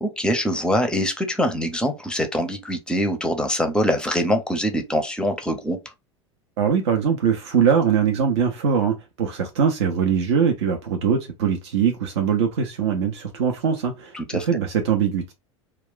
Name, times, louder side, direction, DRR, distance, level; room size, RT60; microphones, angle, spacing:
voice 1, 0.0-5.8 14.1-14.5, equal, 5° left, 0.6 m, -23 dB
voice 2, 6.6-15.3, right 7 dB, 60° right, 0.5 m, -22 dB
2.3 x 2.2 x 3.6 m
figure-of-eight pair, 80°, 16 cm